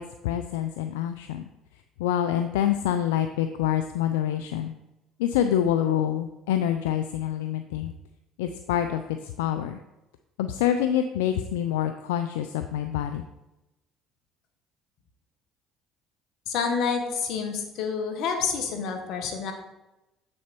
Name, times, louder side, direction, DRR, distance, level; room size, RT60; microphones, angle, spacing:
voice 1, 0.0-1.5 2.0-4.7 5.2-7.9 8.4-9.8 10.4-13.3, left 10 dB, 90° left, 8 dB, 0.4 m, -26 dB
voice 2, 16.5-19.5, left 6 dB, 70° left, 5 dB, 1.6 m, -28 dB
7.7 x 6.3 x 4.5 m, 0.97 s
supercardioid pair, 75°, 0 cm